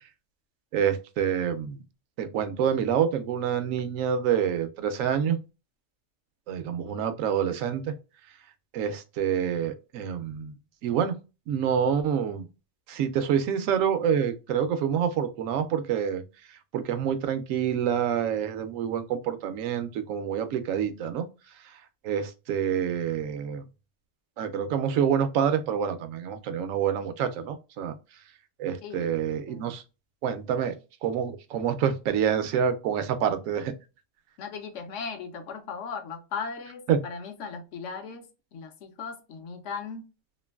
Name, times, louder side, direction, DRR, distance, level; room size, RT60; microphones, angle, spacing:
voice 1, 0.7-1.8 2.2-5.4 6.5-7.9 8.7-10.5 10.8-11.1 11.5-12.5 12.9-16.2 16.7-21.3 21.6-23.6 24.4-27.9 28.6-29.8 30.2-30.7 31.0-33.7 36.9-37.0, right 8 dB, 85° right, 1.0 m, -27 dB
voice 2, 28.8-29.2 29.5-29.7 34.4-38.3 38.5-40.0, left 5 dB, 70° left, 0.9 m, -37 dB
3.0 x 2.5 x 2.2 m
omnidirectional pair, 1.3 m